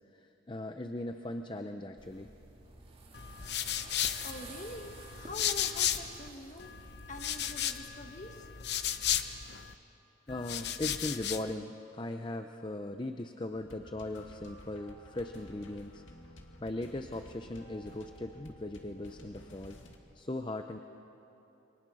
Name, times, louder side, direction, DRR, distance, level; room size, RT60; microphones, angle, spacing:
voice 1, 0.2-2.3 10.3-16.0 16.6-19.8 20.1-20.8, left 1 dB, 25° left, 6 dB, 0.6 m, -39 dB
sound 1, 2.0-7.5, right 3 dB, 30° right, 2.3 m, -52 dB
sound 2, 3.1-6.3 6.6-9.7 10.3-11.5, left 10 dB, 55° left, 0.9 m, -35 dB
voice 2, 4.2-8.5, left 1 dB, 40° left, 5 dB, 1.6 m, -45 dB
sound 3, 13.5-20.0, equal, 85° left, 2.3 m, -53 dB
28.5 x 23.5 x 6.4 m, 3.0 s
head